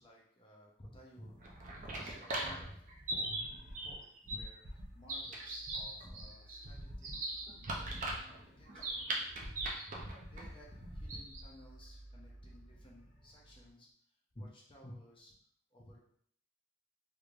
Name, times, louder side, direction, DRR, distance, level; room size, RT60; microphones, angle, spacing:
voice 1, 0.0-1.5 1.8-2.8 3.1-3.4 3.8-7.1 7.7-8.0 8.3-9.0 10.3-13.9 14.3-15.3 15.7-16.0, equal, 30° left, -3 dB, 0.7 m, -55 dB
sound 1, 1.3-11.5, right 1 dB, 45° right, 0.6 m, -40 dB
sound 2, 2.7-13.7, equal, 60° left, 1.5 m, -59 dB
3.4 x 3.1 x 2.5 m, 0.63 s
head